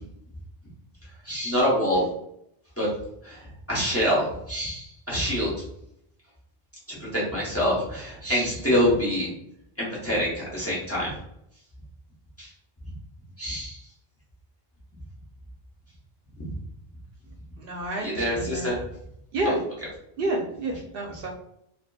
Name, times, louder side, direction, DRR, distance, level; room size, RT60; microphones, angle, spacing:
voice 1, 1.2-2.1 2.8-2.9 3.2-3.4 3.7-5.5 6.9-9.3 9.8-11.1 12.4-12.5 13.4-13.8 16.4-16.5 18.0-18.8 19.4-19.5, equal, 15° left, -6 dB, 0.8 m, -26 dB
voice 2, 17.6-18.7 19.3-19.6 20.2-21.3, right 1 dB, 70° right, 0 dB, 0.8 m, -29 dB
2.8 x 2.4 x 2.2 m, 0.76 s
omnidirectional pair, 1.0 m